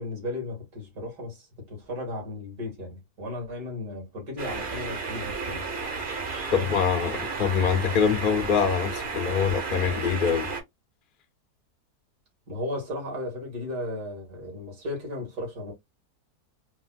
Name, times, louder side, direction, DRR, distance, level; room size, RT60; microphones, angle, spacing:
voice 1, 0.0-5.7 6.5-6.7 12.5-15.7, left 1 dB, 75° right, 2.3 m, -35 dB
sound 1, 4.4-10.6, right 4 dB, 45° right, 0.7 m, -33 dB
voice 2, 6.5-10.5, left 7 dB, 90° left, 0.4 m, -24 dB
4.1 x 2.2 x 2.3 m
omnidirectional pair, 1.7 m